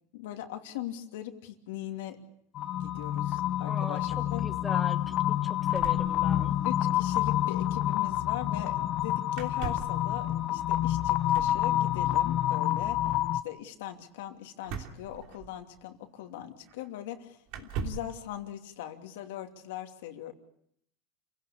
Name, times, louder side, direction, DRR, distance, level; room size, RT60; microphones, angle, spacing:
voice 1, 0.1-2.2 2.8-4.5 6.6-13.0 13.3-20.3, left 12 dB, 80° left, 5 dB, 2.8 m, -40 dB
sound 1, 2.5-13.4, left 13 dB, 45° left, 0.9 m, -28 dB
Organ, 2.6-13.3, right 4 dB, 25° right, 3.7 m, -52 dB
voice 2, 3.7-6.5, left 3 dB, 15° left, 7 dB, 1.4 m, -40 dB
sound 2, 5.7-6.8 7.0-7.1 7.3-7.5 9.3-10.0 11.3-11.7 14.6-15.8 16.7-16.8 17.5-18.2, right 6 dB, 65° right, 3.1 m, -39 dB
29.0 x 17.0 x 8.5 m, 0.72 s
supercardioid pair, 125°, 0 cm